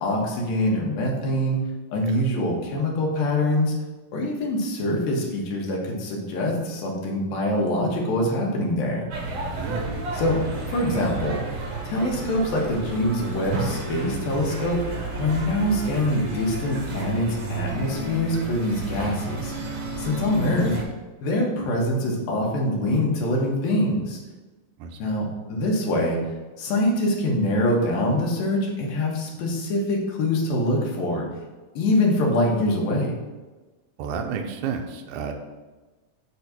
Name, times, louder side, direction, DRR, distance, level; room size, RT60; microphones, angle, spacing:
voice 1, 0.0-1.6 1.9-3.7 4.1-9.1 10.1-10.4 10.7-11.4 11.8-14.8 15.2-19.5 20.0-20.7 21.2-24.2 25.0-26.2 26.6-31.3 31.8-33.1, left 1 dB, 90° left, -2 dB, 3.2 m, -24 dB
sound 1, 9.1-20.8, right 2 dB, 60° right, 1.3 m, -31 dB
voice 2, 9.6-10.0 15.3-15.6 24.8-25.0 34.0-35.3, right 6 dB, 75° right, 3 dB, 1.9 m, -31 dB
8.5 x 3.6 x 5.9 m, 1.2 s
omnidirectional pair, 4.0 m